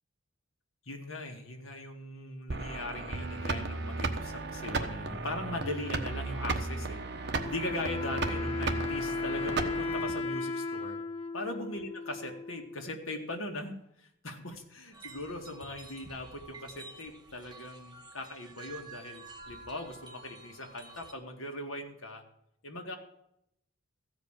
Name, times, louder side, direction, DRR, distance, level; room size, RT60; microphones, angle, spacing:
voice 1, 0.9-7.0 7.4-11.0 11.3-22.2 22.6-23.0, left 2 dB, 75° left, 2 dB, 2.1 m, -40 dB
sound 1, 2.5-10.1, right 3 dB, 50° right, 1.2 m, -35 dB
Wind instrument woodwind instrument, 7.4-12.9, left 3 dB, 30° left, 0.6 m, -36 dB
sound 2, 14.9-21.1, right 3 dB, 20° right, 1.1 m, -50 dB
14.5 x 5.3 x 8.9 m, 0.77 s
head